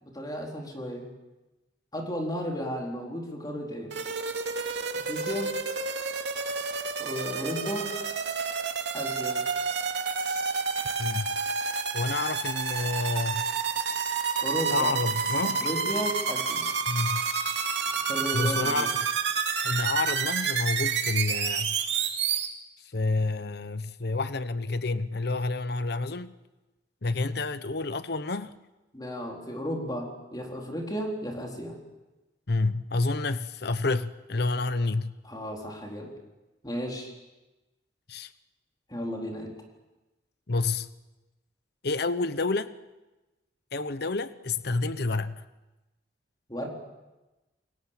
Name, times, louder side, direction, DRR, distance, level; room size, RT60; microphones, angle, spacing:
voice 1, 0.0-1.1 1.9-4.0 4.9-5.5 7.0-7.9 8.9-9.4 14.4-14.9 15.4-16.7 17.9-18.9 28.9-31.8 35.2-36.1 36.6-37.1 38.9-39.5 46.5-46.7, equal, 20° left, 0 dB, 4.2 m, -34 dB
sound 1, 3.9-22.5, right 5 dB, 65° right, 2.6 m, -29 dB
voice 2, 11.0-11.4 11.9-13.4 14.7-15.7 16.9-17.2 18.3-18.9 19.6-21.8 22.9-26.3 27.0-28.5 32.5-35.1 38.1-38.3 40.5-40.9 41.8-42.7 43.7-45.4, left 3 dB, 60° left, 13 dB, 1.0 m, -29 dB
29.5 x 22.5 x 7.5 m, 1.1 s
head